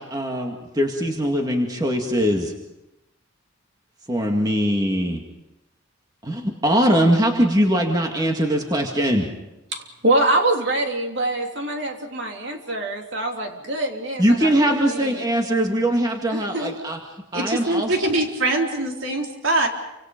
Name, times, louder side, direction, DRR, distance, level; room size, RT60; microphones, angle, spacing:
voice 1, 0.0-2.5 4.1-5.2 6.2-9.3 14.2-17.0 17.3-17.9, equal, 20° right, 2 dB, 2.1 m, -21 dB
voice 2, 9.7-15.2 16.3-16.7, right 2 dB, 55° right, 2 dB, 3.2 m, -25 dB
voice 3, 17.3-19.7, right 2 dB, 70° right, 1 dB, 3.8 m, -23 dB
28.5 x 26.0 x 5.3 m, 0.95 s
head